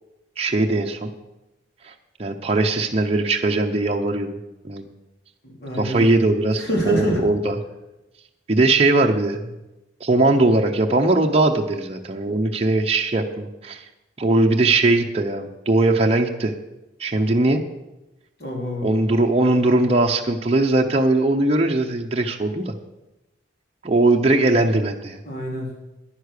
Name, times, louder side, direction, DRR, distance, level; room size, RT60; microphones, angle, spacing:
voice 1, 0.4-1.1 1.8-1.9 2.2-4.4 4.6-4.9 5.8-7.5 8.5-9.5 10.0-13.8 14.2-16.5 17.0-17.6 18.8-22.7 23.8-25.2, right 2 dB, 30° right, 2 dB, 0.7 m, -20 dB
voice 2, 5.4-6.0 6.6-7.2 18.4-19.0 25.3-25.9, equal, 55° left, -2 dB, 3.7 m, -26 dB
10.5 x 9.8 x 6.6 m, 0.98 s
head